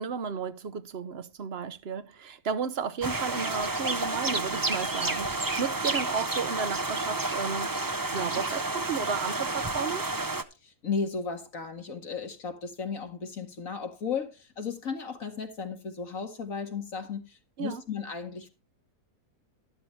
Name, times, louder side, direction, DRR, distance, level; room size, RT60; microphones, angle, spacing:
voice 1, 0.0-7.7 8.1-10.0 17.6-17.8, right 6 dB, 45° right, 1.0 m, -33 dB
sound 1, 3.0-10.4, right 2 dB, 20° right, 0.5 m, -30 dB
voice 2, 10.6-18.5, left 5 dB, 60° left, 2.3 m, -35 dB
12.5 x 12.0 x 3.2 m
omnidirectional pair, 1.6 m